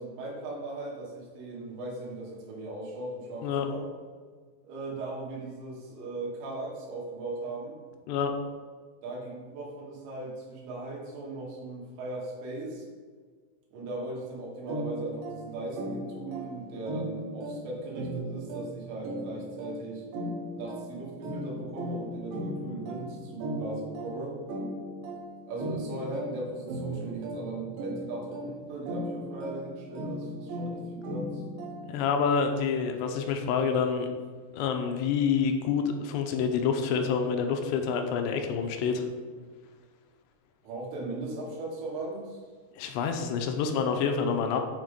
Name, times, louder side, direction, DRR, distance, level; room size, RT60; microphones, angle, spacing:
voice 1, 0.0-3.8 4.6-7.8 9.0-12.9 13.7-20.0 20.5-24.4 25.5-31.4 40.6-42.4, right 2 dB, 85° right, -3 dB, 3.6 m, -38 dB
sound 1, 14.7-32.1, right 1 dB, 65° right, 2.5 m, -37 dB
voice 2, 31.9-34.1 34.5-39.1 42.8-44.6, left 6 dB, 80° left, 5 dB, 2.7 m, -27 dB
8.2 x 3.6 x 5.0 m, 1.5 s
omnidirectional pair, 5.1 m